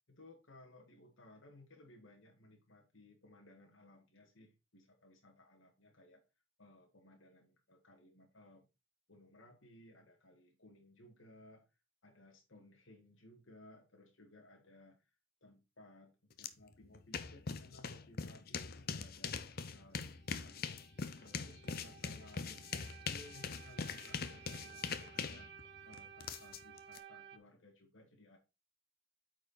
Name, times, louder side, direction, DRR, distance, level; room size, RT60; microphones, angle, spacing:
voice 1, 0.1-6.2 6.6-8.7 9.1-11.6 12.0-15.1 15.4-20.8 21.2-25.5 25.8-28.4, left 1 dB, 75° left, 1.7 m, -60 dB
sound 1, 16.4-16.5 16.8-27.0, left 5 dB, 50° left, 0.7 m, -42 dB
sound 2, 19.9-27.4, right 8 dB, 55° right, 0.9 m, -56 dB
8.9 x 4.8 x 4.1 m
head